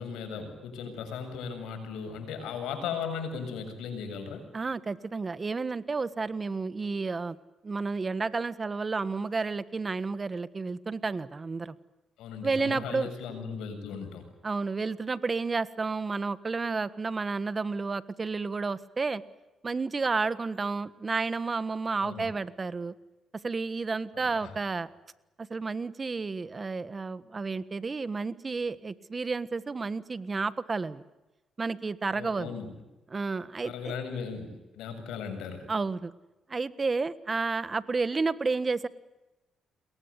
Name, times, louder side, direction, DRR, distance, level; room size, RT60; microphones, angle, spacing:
voice 1, 0.0-4.5 12.2-14.2 22.0-22.3 24.3-24.5 32.1-32.7 33.6-35.7, left 6 dB, 90° left, 7 dB, 7.3 m, -37 dB
voice 2, 4.5-7.3 7.6-11.7 12.4-13.1 14.4-19.2 19.6-22.9 23.4-24.9 25.4-31.0 31.6-32.6 33.1-33.9 35.7-36.1 36.5-38.9, right 4 dB, 30° right, 15 dB, 1.4 m, -31 dB
29.5 x 22.5 x 8.3 m, 1.1 s
cardioid pair, 90°, 0 cm